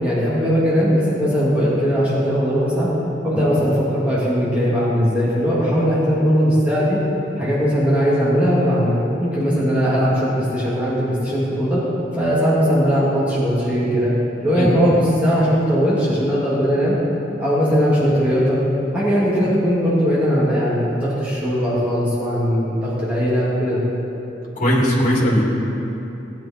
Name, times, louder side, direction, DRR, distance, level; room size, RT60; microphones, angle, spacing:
voice 1, 0.0-2.9 3.2-7.0 7.4-11.8 12.1-14.1 14.4-17.0 17.4-18.6 18.9-23.8, equal, 5° right, -10 dB, 2.7 m, -19 dB
voice 2, 24.6-25.5, equal, 45° left, -4 dB, 3.0 m, -18 dB
18.0 x 10.0 x 4.5 m, 3.0 s
head